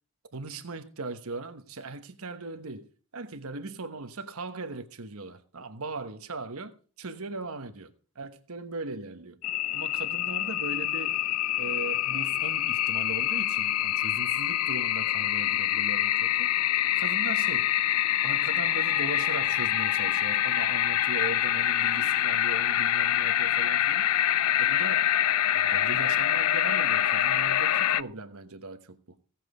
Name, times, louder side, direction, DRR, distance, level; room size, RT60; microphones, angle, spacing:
voice 1, 0.3-2.9 3.1-6.7 7.0-9.4 9.7-11.2 11.6-16.5 16.9-17.7 18.2-24.2 24.6-25.1 25.5-29.0, right 3 dB, 70° right, 1.2 m, -39 dB
sound 1, 9.4-28.0, left 12 dB, 90° left, 0.5 m, -26 dB
16.5 x 7.5 x 4.9 m
head